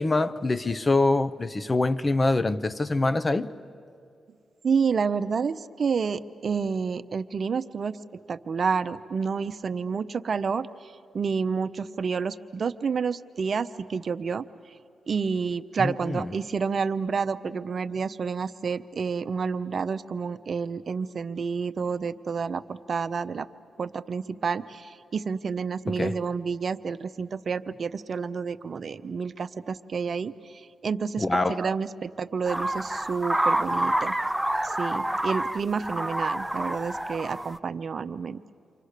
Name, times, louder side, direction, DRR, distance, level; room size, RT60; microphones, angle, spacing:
voice 1, 0.0-3.5 15.8-16.3 25.9-26.2 31.2-31.6, left 2 dB, 30° left, 0.7 m, -25 dB
voice 2, 4.6-8.0 8.3-14.4 15.1-23.5 23.8-34.1 34.6-38.4, right 5 dB, 55° right, 0.6 m, -29 dB
sound 1, 32.4-37.6, right 1 dB, 10° right, 0.5 m, -28 dB
29.5 x 24.5 x 6.6 m
cardioid pair, 65°, 0 cm